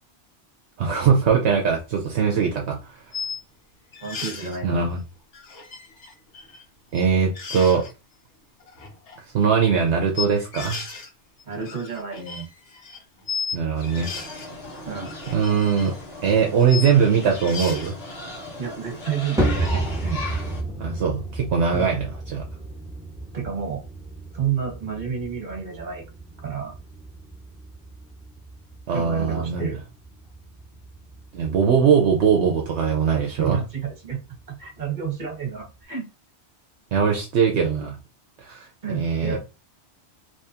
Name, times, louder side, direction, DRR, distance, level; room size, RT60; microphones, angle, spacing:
voice 1, 0.8-3.0 4.6-5.0 6.9-7.8 9.3-10.8 13.5-14.1 15.3-15.9 16.2-18.0 20.8-22.4 28.9-29.7 31.3-33.6 36.9-38.0 38.4-39.4, right 6 dB, 75° right, 1.0 m, -21 dB
sound 1, 2.5-2.6 3.1-3.4 3.9-4.6 5.3-6.6 6.9-7.0 7.4-7.9 8.6-9.2 10.2-11.1 11.4-13.6 13.8-14.5 14.9-16.9 17.4-17.9, left 5 dB, 80° left, 1.3 m, -35 dB
voice 2, 4.0-4.9 11.4-12.5 14.8-15.2 18.6-20.2 21.7-22.0 23.3-23.8 24.3-26.0 26.4-26.7 28.9-29.8 33.1-34.2 34.5-36.1 38.8-39.4, right 7 dB, 40° right, 1.4 m, -30 dB
sound 2, 13.8-20.6, left 2 dB, 60° left, 1.3 m, -38 dB
sound 3, 19.4-35.8, right 2 dB, 5° right, 1.0 m, -33 dB
3.5 x 3.0 x 2.8 m
omnidirectional pair, 1.2 m